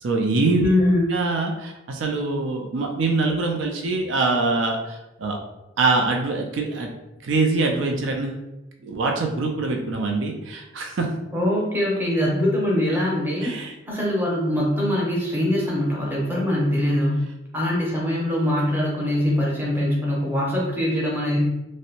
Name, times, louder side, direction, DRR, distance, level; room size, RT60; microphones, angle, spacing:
voice 1, 0.0-0.7 1.1-5.4 5.8-6.9 7.2-8.5 8.8-11.1 13.4-13.7, right 3 dB, 85° right, 2 dB, 0.4 m, -24 dB
voice 2, 0.6-1.1 11.3-13.6 13.9-17.2 17.5-21.4, left 1 dB, 10° right, -4 dB, 0.6 m, -22 dB
2.6 x 2.1 x 2.8 m, 0.95 s
head